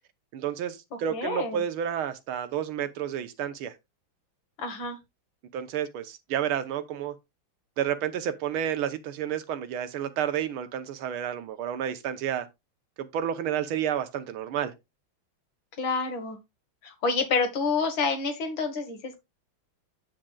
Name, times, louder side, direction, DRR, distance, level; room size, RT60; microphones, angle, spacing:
voice 1, 0.3-3.7 5.5-7.2 7.8-12.5 13.0-14.7, right 9 dB, 85° right, 1.8 m, -30 dB
voice 2, 0.9-1.6 4.6-5.0 15.8-16.4 16.8-19.2, left 4 dB, 70° left, 2.2 m, -28 dB
8.6 x 7.6 x 2.3 m
omnidirectional pair, 2.3 m